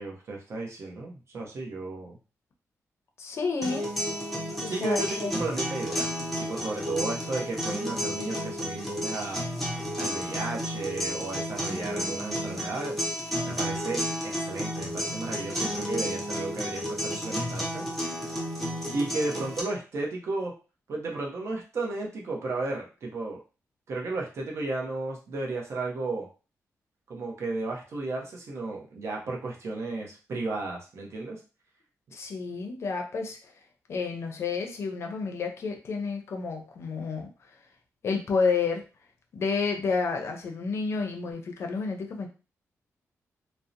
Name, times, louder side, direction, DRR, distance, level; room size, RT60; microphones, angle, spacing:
voice 1, 0.0-2.2 4.7-6.1 6.5-9.4 10.0-13.0 13.5-14.0 14.3-17.9 18.9-20.5 20.9-23.4 23.9-26.3 27.1-31.4, right 3 dB, 55° right, -1 dB, 0.7 m, -33 dB
voice 2, 3.2-3.9 4.6-5.3 32.1-33.5 33.9-37.3 38.0-38.8 39.3-42.3, left 4 dB, 55° left, 3 dB, 0.5 m, -30 dB
sound 1, 3.6-19.6, equal, 5° left, 0.6 m, -32 dB
2.7 x 2.0 x 2.5 m, 0.33 s
wide cardioid pair, 160°, 6 cm